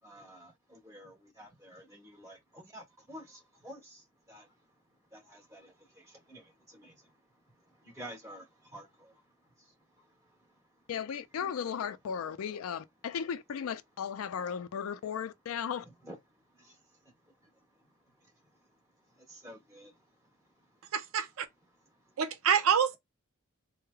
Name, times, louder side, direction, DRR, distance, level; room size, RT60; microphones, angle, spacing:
voice 1, 0.0-4.8 5.1-10.7 15.8-20.9 21.7-22.2, equal, 15° right, 1.2 m, -53 dB
voice 2, 10.9-15.9, left 7 dB, 85° left, 0.4 m, -36 dB
voice 3, 20.9-21.5 22.2-23.0, right 8 dB, 85° right, 0.5 m, -27 dB
3.1 x 2.1 x 2.2 m
head